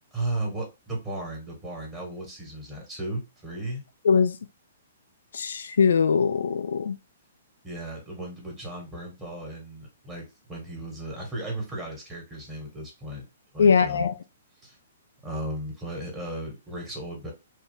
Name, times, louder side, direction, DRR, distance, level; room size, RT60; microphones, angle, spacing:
voice 1, 0.1-3.8 7.6-13.3 13.5-14.1 14.6-14.8 15.2-17.3, right 1 dB, 15° right, 1.9 m, -35 dB
voice 2, 4.0-4.4 5.3-7.0 13.6-14.1, left 6 dB, 65° left, 0.4 m, -21 dB
4.2 x 2.5 x 3.5 m
figure-of-eight pair, 115°, 0 cm